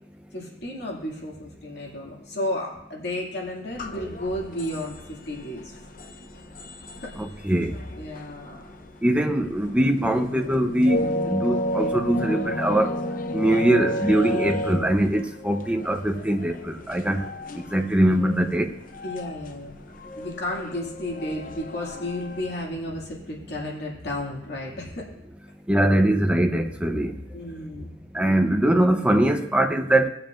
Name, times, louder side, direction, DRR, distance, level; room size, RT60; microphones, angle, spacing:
voice 1, 0.3-5.8 7.0-7.1 7.9-8.7 19.0-19.7 20.2-25.1 27.3-27.9, left 1 dB, 65° left, -3 dB, 2.4 m, -33 dB
sound 1, 3.7-22.6, equal, 50° left, 0.7 m, -33 dB
voice 2, 7.2-7.8 9.0-12.9 13.3-17.2 17.7-18.7 25.7-27.1 28.1-30.1, right 1 dB, 5° right, 4 dB, 0.8 m, -22 dB
19.5 x 7.3 x 2.6 m, 0.82 s
head